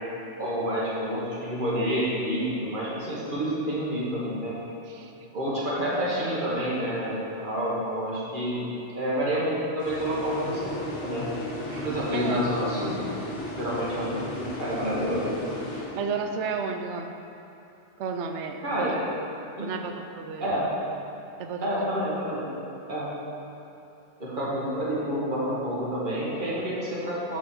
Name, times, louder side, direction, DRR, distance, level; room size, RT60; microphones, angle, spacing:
voice 1, 0.4-4.6 5.3-8.6 8.9-11.3 11.8-13.1 13.6-15.3 18.6-18.9 19.6-19.7 20.4-20.7 21.6-22.5 22.9-23.1 24.2-27.4, equal, 40° right, -6 dB, 1.8 m, -28 dB
sound 1, 9.8-16.5, left 1 dB, 70° left, 1.3 m, -36 dB
voice 2, 11.7-12.4 15.7-17.1 18.0-19.0 19.6-20.5 21.4-21.9, right 5 dB, 70° right, 6 dB, 0.9 m, -33 dB
6.5 x 5.0 x 6.2 m, 2.8 s
omnidirectional pair, 1.3 m